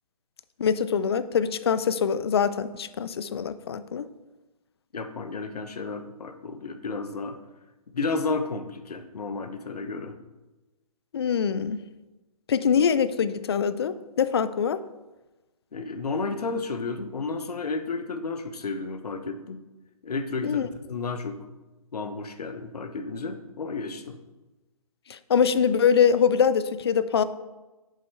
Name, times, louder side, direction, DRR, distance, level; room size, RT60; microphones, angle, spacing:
voice 1, 0.6-4.1 11.1-11.8 12.5-14.8 20.4-20.7 25.1-27.2, left 7 dB, 40° left, 15 dB, 0.4 m, -23 dB
voice 2, 4.9-7.4 7.9-10.2 15.7-19.6 20.0-20.6 20.9-21.4 21.9-24.2, left 3 dB, 80° left, 8 dB, 0.9 m, -32 dB
7.6 x 5.2 x 4.7 m, 1.1 s
hypercardioid pair, 155°, 20 cm